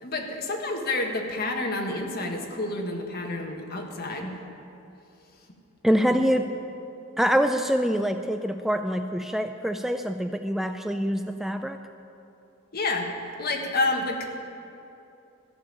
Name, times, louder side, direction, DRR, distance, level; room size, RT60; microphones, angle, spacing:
voice 1, 0.0-4.4 12.7-13.1 13.4-14.2, left 2 dB, 55° left, 1 dB, 1.6 m, -29 dB
voice 2, 5.8-6.4 7.2-11.8, equal, ahead, 7 dB, 0.3 m, -25 dB
14.0 x 7.0 x 8.8 m, 2.8 s
head